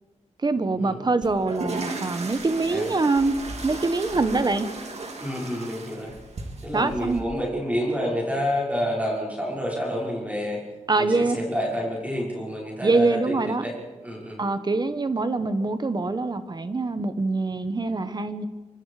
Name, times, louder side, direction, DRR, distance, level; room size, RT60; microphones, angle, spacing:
voice 1, 0.4-4.7 6.7-7.2 10.9-11.4 12.8-13.6 14.4-18.4, right 3 dB, 35° right, 11 dB, 1.2 m, -24 dB
sound 1, 1.2-7.2, right 3 dB, 65° right, 3.5 m, -36 dB
voice 2, 5.2-6.1 6.6-10.6 11.0-13.7 14.0-14.4, equal, 10° right, -4 dB, 5.7 m, -28 dB
25.5 x 24.5 x 5.0 m, 1.3 s
wide cardioid pair, 145°, 12 cm